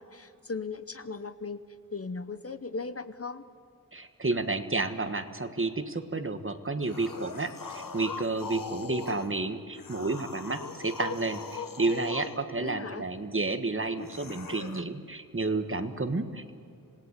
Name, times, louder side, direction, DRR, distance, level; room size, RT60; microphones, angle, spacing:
voice 1, 0.0-1.6 1.9-3.4 12.6-13.1, left 4 dB, 45° left, 12 dB, 0.8 m, -37 dB
voice 2, 3.9-16.5, right 3 dB, 40° right, 9 dB, 1.4 m, -31 dB
sound 1, 6.8-9.3 9.7-12.4 14.0-14.8, left 4 dB, 80° left, 1.2 m, -40 dB
26.5 x 17.5 x 8.2 m, 2.5 s
wide cardioid pair, 55°, 34 cm